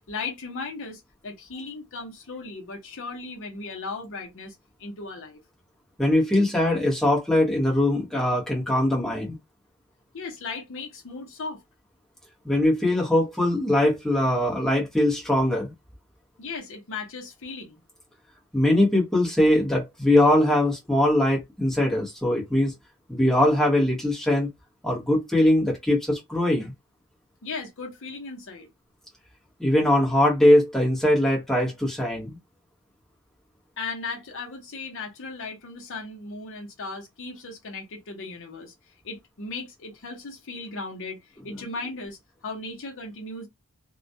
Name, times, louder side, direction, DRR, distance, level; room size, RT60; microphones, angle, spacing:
voice 1, 0.1-5.4 10.1-11.6 16.4-17.8 27.4-28.7 33.8-38.7 39.0-43.5, left 3 dB, 60° left, 0.7 m, -37 dB
voice 2, 6.0-9.3 12.4-15.7 18.5-22.7 23.1-24.5 24.8-26.7 29.6-32.4, left 1 dB, ahead, 0.8 m, -21 dB
2.2 x 2.1 x 2.6 m
head